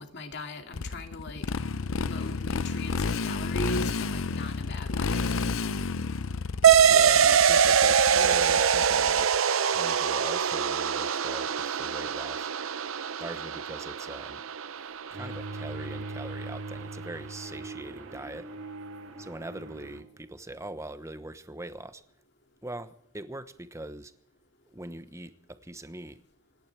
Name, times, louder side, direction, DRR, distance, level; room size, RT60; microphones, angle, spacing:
voice 1, 0.0-1.4 2.0-5.2, left 1 dB, 55° left, 4 dB, 2.5 m, -39 dB
Motorcycle, 0.7-9.4, left 4 dB, 75° left, 0.6 m, -31 dB
sound 1, 6.6-15.7, right 7 dB, 75° right, 0.7 m, -23 dB
voice 2, 6.8-9.3 9.7-12.5 13.2-14.4 15.1-18.5 19.2-22.0 22.6-24.1 24.7-26.2, right 1 dB, 15° right, 11 dB, 1.0 m, -41 dB
Bowed string instrument, 15.1-20.2, right 2 dB, 55° right, 3.3 m, -40 dB
26.5 x 11.0 x 4.7 m, 0.69 s
head